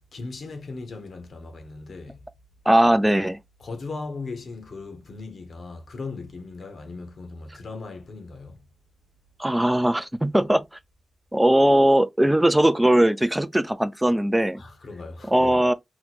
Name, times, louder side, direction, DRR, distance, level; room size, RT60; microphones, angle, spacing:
voice 1, 0.1-2.3 3.6-8.7 14.5-15.7, left 3 dB, 60° left, 0.9 m, -38 dB
voice 2, 2.7-3.4 9.4-10.6 11.3-14.6 15.3-15.7, right 1 dB, 10° right, 0.3 m, -19 dB
3.0 x 2.2 x 4.1 m
wide cardioid pair, 125°, 0 cm